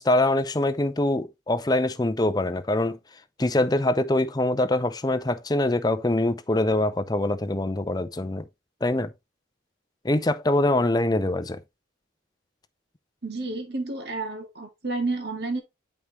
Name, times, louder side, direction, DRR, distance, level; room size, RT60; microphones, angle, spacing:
voice 1, 0.0-3.0 3.4-8.4 8.8-9.1 10.0-11.6, left 1 dB, 20° left, 0.6 m, -24 dB
voice 2, 13.2-15.6, right 3 dB, 55° right, 2.0 m, -30 dB
8.1 x 5.3 x 3.0 m
head